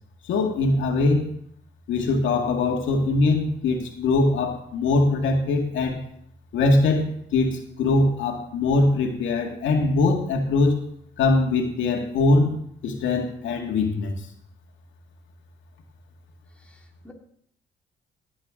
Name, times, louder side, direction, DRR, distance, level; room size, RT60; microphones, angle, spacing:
voice 1, 0.2-1.3 1.9-6.0 6.5-10.8 11.2-14.3, left 2 dB, 75° left, 2 dB, 2.1 m, -22 dB
voice 2, 16.6-17.1, left 2 dB, 5° left, 0 dB, 2.5 m, -51 dB
17.0 x 8.6 x 3.8 m, 0.68 s
cardioid pair, 90°, 20 cm